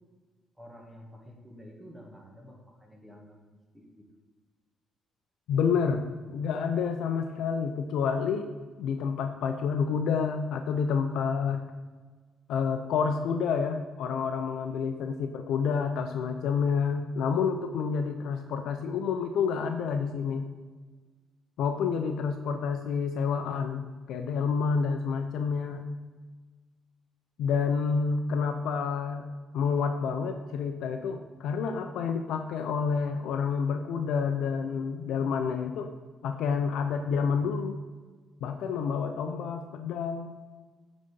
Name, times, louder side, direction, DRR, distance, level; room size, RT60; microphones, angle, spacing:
voice 1, 0.6-4.0 14.4-14.5, equal, 5° right, -1 dB, 1.9 m, -50 dB
voice 2, 5.5-6.0 6.3-8.5 8.8-11.6 12.5-20.5 21.6-25.9 27.4-29.3 29.5-35.9 36.2-37.8 38.4-40.4, left 6 dB, 80° left, 6 dB, 0.5 m, -29 dB
8.8 x 4.0 x 5.2 m, 1.4 s
cardioid pair, 90°, 0 cm